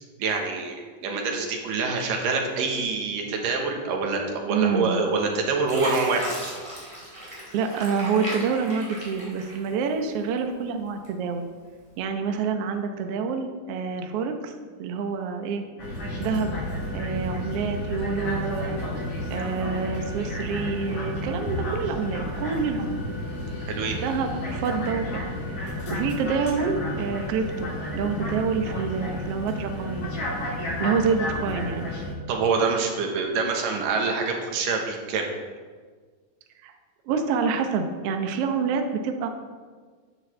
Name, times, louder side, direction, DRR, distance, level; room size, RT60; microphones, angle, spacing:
voice 1, 0.2-6.3 23.7-24.0 32.3-35.3, right 4 dB, 90° right, 2 dB, 3.0 m, -26 dB
voice 2, 4.5-5.0 7.5-11.5 12.0-14.5 14.8-15.6 16.2-16.6 16.9-18.8 19.3-23.0 24.0-25.0 25.5-30.1 30.8-31.9 36.6-36.7 37.1-39.3, right 5 dB, 70° right, 5 dB, 1.5 m, -27 dB
Fill (with liquid), 4.9-5.3 5.7-10.1 10.5-11.3 11.8-12.0, equal, 10° right, 3.1 m, -36 dB
sound 1, 15.8-32.1, left 1 dB, 55° left, 4.6 m, -31 dB
14.0 x 9.7 x 3.4 m, 1.5 s
omnidirectional pair, 3.8 m